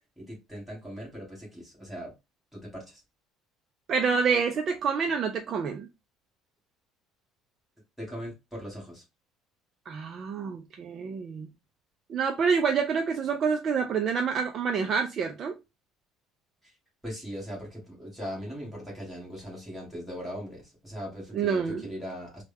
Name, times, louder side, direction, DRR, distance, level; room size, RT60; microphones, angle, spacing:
voice 1, 0.2-2.1 2.5-3.0 8.0-9.0 16.6-16.7 17.0-22.4, equal, ahead, 1.4 m, -39 dB
voice 2, 3.9-5.9 9.9-11.5 12.1-15.5 21.3-21.8, right 6 dB, 35° right, 0.3 m, -27 dB
3.3 x 2.1 x 3.3 m
cardioid pair, 175°, 0 cm